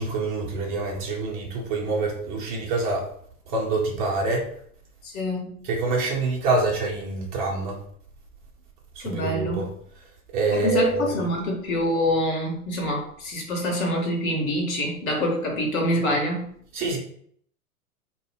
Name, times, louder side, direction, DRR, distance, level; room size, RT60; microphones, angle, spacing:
voice 1, 0.0-3.1 3.5-4.4 5.6-7.8 9.0-9.7 10.3-11.2 16.7-17.0, right 3 dB, 30° right, -1 dB, 0.7 m, -26 dB
voice 2, 5.0-5.7 9.0-9.7 10.5-16.5, left 1 dB, 60° left, 0 dB, 1.0 m, -26 dB
2.2 x 2.0 x 3.3 m, 0.62 s
figure-of-eight pair, 105°, 46 cm